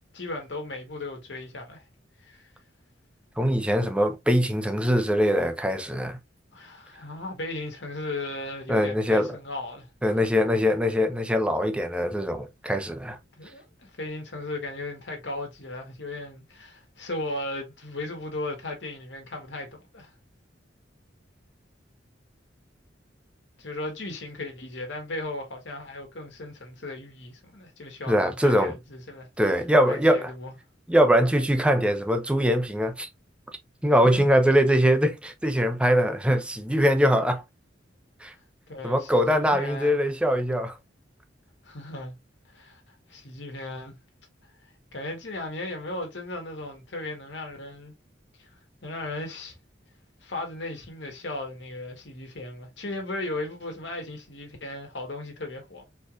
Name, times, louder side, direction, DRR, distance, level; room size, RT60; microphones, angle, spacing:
voice 1, 0.1-1.8 2.2-2.5 6.5-9.9 13.4-20.1 23.6-29.3 29.8-30.5 34.2-34.3 38.7-40.0 41.6-42.1 42.5-43.9 44.9-47.9 48.4-48.5 48.8-49.6 50.2-55.9, left 2 dB, 70° left, 1.6 m, -36 dB
voice 2, 3.4-6.2 8.7-9.4 10.0-13.2 28.1-28.8 29.4-30.3 30.9-33.1 33.8-37.4 38.2-38.3 38.8-40.7, equal, 5° right, 0.6 m, -22 dB
4.3 x 3.2 x 2.5 m
head